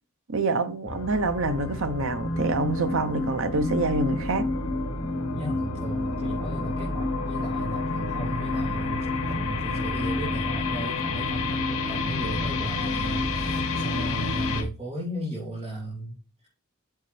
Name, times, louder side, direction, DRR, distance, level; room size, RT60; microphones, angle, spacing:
voice 1, 0.3-4.5, right 3 dB, 65° right, 0.9 m, -26 dB
sound 1, 0.9-14.6, left 2 dB, 75° left, 1.4 m, -29 dB
voice 2, 5.3-16.1, right 1 dB, 30° right, 3.1 m, -36 dB
8.1 x 6.9 x 3.3 m
head